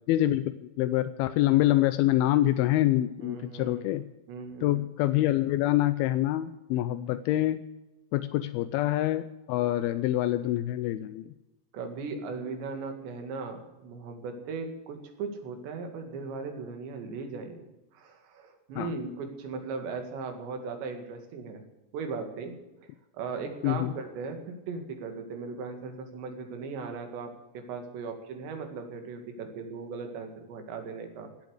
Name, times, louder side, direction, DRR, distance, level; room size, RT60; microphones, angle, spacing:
voice 1, 0.1-4.1 4.6-7.6 8.1-11.3 18.8-18.9 23.6-23.9, left 14 dB, 80° left, 12 dB, 2.2 m, -26 dB
voice 2, 3.2-3.9 4.3-4.8 11.7-17.7 17.9-21.6 21.9-22.5 23.1-31.3, right 4 dB, 85° right, 5 dB, 4.3 m, -38 dB
17.0 x 8.4 x 8.0 m, 1.0 s
omnidirectional pair, 4.9 m